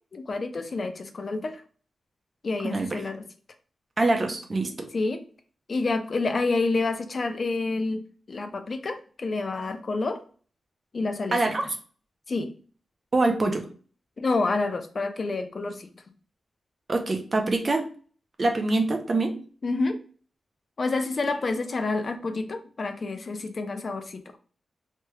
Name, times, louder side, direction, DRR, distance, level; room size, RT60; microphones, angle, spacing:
voice 1, 0.1-1.6 2.4-3.2 4.9-5.2 5.7-8.0 8.3-10.2 10.9-11.4 12.3-12.5 14.2-15.9 19.6-20.0 20.8-24.2, left 3 dB, 45° left, 8 dB, 0.4 m, -28 dB
voice 2, 2.6-3.0 4.0-4.9 11.3-11.7 13.1-13.6 16.9-17.8 18.4-19.3, right 2 dB, 35° right, 4 dB, 0.6 m, -24 dB
3.1 x 2.2 x 3.0 m, 0.42 s
wide cardioid pair, 110°, 0 cm